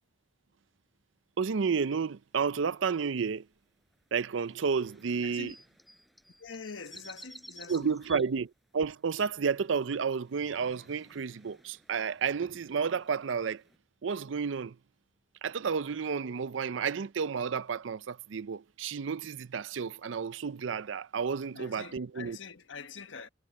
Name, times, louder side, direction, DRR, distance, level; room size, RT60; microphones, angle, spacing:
voice 1, 1.4-3.5 4.1-5.5 7.7-13.6 14.0-14.8 15.4-22.4, right 6 dB, 80° right, 0.5 m, -31 dB
sound 1, 4.5-8.3 10.0-13.8, equal, ahead, 7.0 m, -53 dB
voice 2, 5.2-5.5 6.4-7.9 21.5-23.3, left 4 dB, 85° left, 1.4 m, -44 dB
head